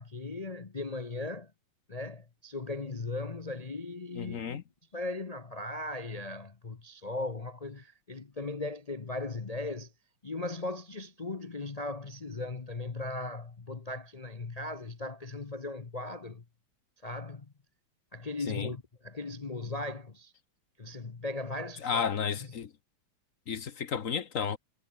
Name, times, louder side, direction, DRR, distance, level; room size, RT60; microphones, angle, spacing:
voice 1, 0.0-1.5 1.9-4.6 4.9-9.9 10.2-16.4 17.0-17.5 18.1-20.3 20.8-22.5, left 2 dB, 65° left, 0.3 m, -38 dB
voice 2, 4.2-4.6 18.5-18.7 21.8-22.7 23.5-24.6, left 7 dB, 45° left, 1.1 m, -32 dB
omnidirectional pair, 2.4 m